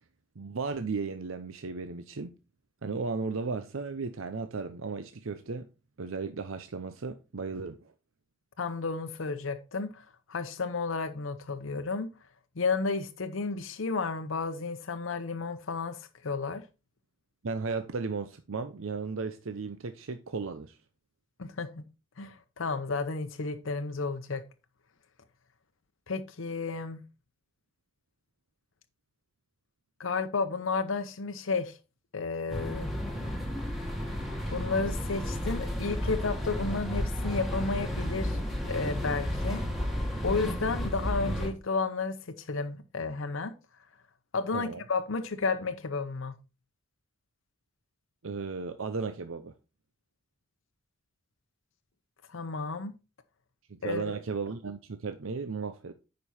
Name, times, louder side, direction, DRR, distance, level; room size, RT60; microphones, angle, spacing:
voice 1, 0.4-2.3 2.8-5.7 6.0-7.9 17.4-20.8 44.5-44.8 48.2-49.5 53.8-55.9, right 4 dB, 80° right, 0.7 m, -35 dB
voice 2, 8.6-10.0 10.3-12.1 12.6-16.6 21.4-21.8 22.2-24.4 26.1-27.0 30.0-31.8 32.1-32.9 34.5-38.4 38.7-39.6 40.2-43.5 44.3-46.3 52.3-52.9 53.8-54.0, left 4 dB, 70° left, 0.7 m, -32 dB
sound 1, 32.5-41.5, equal, ahead, 1.7 m, -32 dB
9.3 x 5.3 x 4.2 m
head